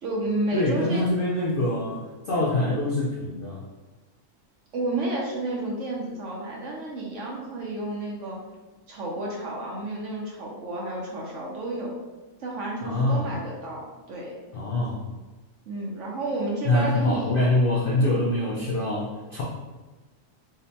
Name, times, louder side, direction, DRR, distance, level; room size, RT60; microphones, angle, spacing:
voice 1, 0.0-1.0 4.7-8.4 8.9-11.9 12.4-14.3 15.7-17.3, right 2 dB, 65° right, -2 dB, 0.9 m, -31 dB
voice 2, 0.5-3.6 12.8-13.3 14.5-15.0 16.6-19.4, left 1 dB, 85° left, -4 dB, 0.4 m, -24 dB
5.0 x 2.1 x 2.7 m, 1.2 s
omnidirectional pair, 1.6 m